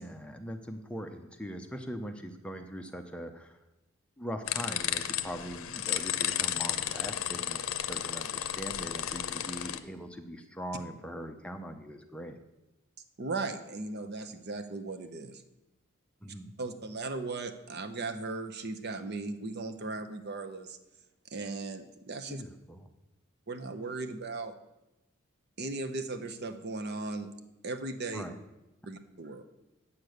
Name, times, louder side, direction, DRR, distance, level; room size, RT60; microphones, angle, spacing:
voice 1, 0.0-3.6 4.2-12.4 16.2-16.5 22.3-22.8 28.1-28.4, equal, 5° left, 5 dB, 0.6 m, -41 dB
sound 1, 4.5-9.8, left 10 dB, 75° left, 0.6 m, -33 dB
voice 2, 13.2-15.4 16.6-20.8 21.3-22.4 23.5-24.5 25.6-27.3 27.6-28.3 28.9-29.4, right 3 dB, 50° right, 8 dB, 0.8 m, -37 dB
8.7 x 6.7 x 7.9 m, 0.96 s
head